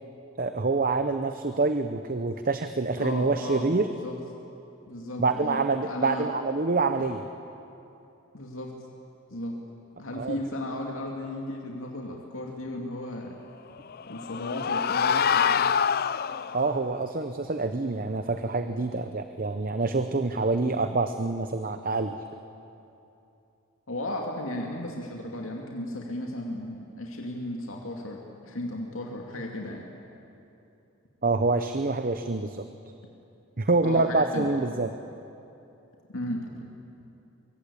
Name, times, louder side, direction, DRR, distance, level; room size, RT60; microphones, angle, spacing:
voice 1, 0.4-3.9 5.2-7.2 10.1-10.4 16.5-22.1 31.2-32.7 33.6-34.9, right 3 dB, 45° right, 8 dB, 0.8 m, -26 dB
voice 2, 3.0-3.7 4.0-4.2 4.9-5.6 5.9-6.3 8.3-8.7 9.3-9.6 10.0-13.3 14.1-15.8 23.9-29.9 33.8-34.6 36.1-36.4, left 1 dB, 80° left, 0 dB, 2.5 m, -35 dB
sound 1, 13.8-16.8, left 7 dB, 45° left, 0.5 m, -25 dB
23.5 x 23.5 x 8.7 m, 2.8 s
head